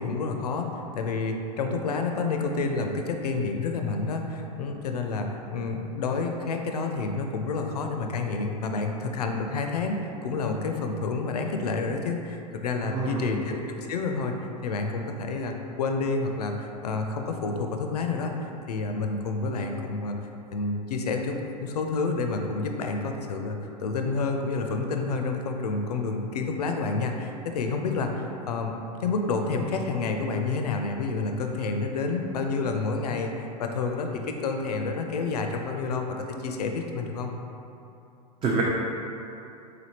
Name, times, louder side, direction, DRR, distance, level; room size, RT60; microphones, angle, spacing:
voice 1, 0.0-14.3 14.6-20.2 20.5-28.7 29.0-37.3, left 3 dB, 75° left, 4 dB, 0.4 m, -29 dB
voice 2, 12.8-13.4 38.4-38.6, right 4 dB, 25° right, -4 dB, 0.4 m, -27 dB
3.6 x 3.3 x 2.8 m, 2.8 s
figure-of-eight pair, 90°, 20 cm